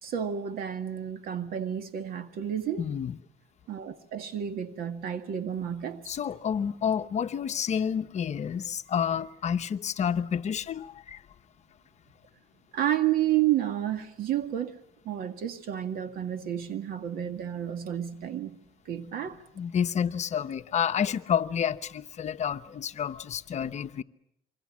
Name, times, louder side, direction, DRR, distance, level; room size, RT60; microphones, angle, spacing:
voice 1, 0.0-2.9 3.7-6.0 12.7-14.8 15.1-18.6 18.9-19.4, right 11 dB, 60° right, 2.0 m, -30 dB
voice 2, 2.8-3.1 6.1-11.2 19.6-24.0, left 8 dB, 40° left, 0.9 m, -29 dB
27.0 x 24.0 x 7.4 m
cardioid pair, 115°, 17 cm